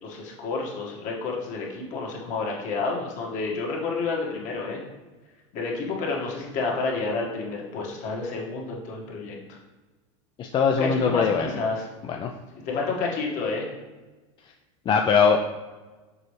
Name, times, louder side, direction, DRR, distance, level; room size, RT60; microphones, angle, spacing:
voice 1, 0.0-4.8 5.5-9.6 10.8-11.9 12.5-13.7, left 4 dB, 50° left, -2 dB, 1.8 m, -30 dB
voice 2, 10.4-11.6 12.2-12.3 14.9-15.4, left 6 dB, 30° left, 3 dB, 0.4 m, -21 dB
6.8 x 4.2 x 3.3 m, 1.2 s
supercardioid pair, 120°, 16 cm